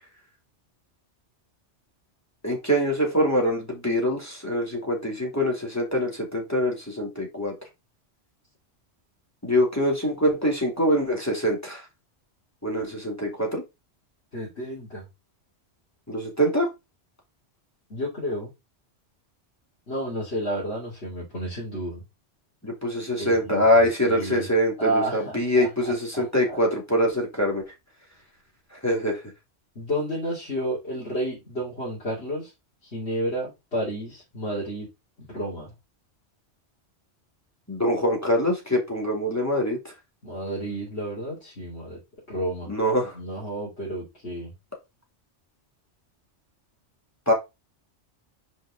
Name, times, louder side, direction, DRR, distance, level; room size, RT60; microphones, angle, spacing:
voice 1, 2.4-7.5 9.4-11.8 12.6-13.6 16.1-16.7 22.6-27.6 28.8-29.2 37.7-39.8 42.7-43.2 47.3-47.4, equal, 15° left, 0 dB, 2.6 m, -24 dB
voice 2, 14.3-15.0 17.9-18.5 19.9-22.0 23.2-24.5 24.8-26.6 29.7-32.5 32.8-34.9 35.3-35.7 40.2-42.0 42.3-42.7 43.1-44.5, right 1 dB, 65° left, -6 dB, 2.9 m, -31 dB
5.7 x 5.1 x 3.6 m, 0.23 s
omnidirectional pair, 1.2 m